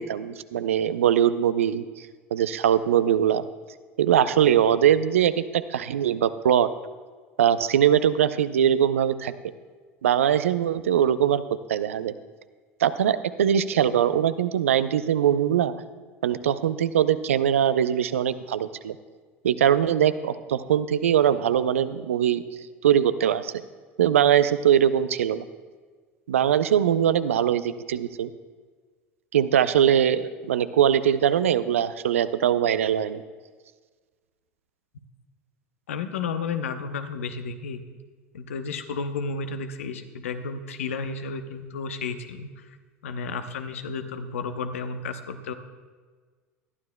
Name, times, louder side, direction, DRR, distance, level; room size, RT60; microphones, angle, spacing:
voice 1, 0.0-3.4 4.0-6.7 7.4-9.3 10.0-11.4 11.7-12.1 12.8-15.7 16.2-19.0 19.4-22.4 22.8-23.5 24.0-25.4 26.3-28.3 29.3-33.2, right 9 dB, 80° right, 13 dB, 0.5 m, -22 dB
voice 2, 35.9-37.8 38.3-42.8 43.0-45.5, left 4 dB, 75° left, 8 dB, 0.8 m, -32 dB
20.5 x 12.5 x 2.2 m, 1.5 s
hypercardioid pair, 75°, 7 cm